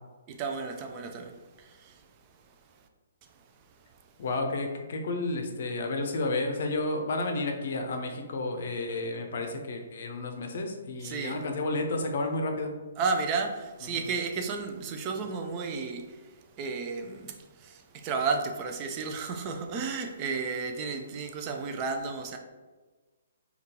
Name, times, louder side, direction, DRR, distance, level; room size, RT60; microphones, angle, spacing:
voice 1, 0.3-2.0 11.0-11.4 13.0-22.4, right 4 dB, 30° right, 0.3 m, -33 dB
voice 2, 4.2-12.7, left 2 dB, 60° left, 0.5 m, -31 dB
3.6 x 2.3 x 2.8 m
figure-of-eight pair, 135°, 0 cm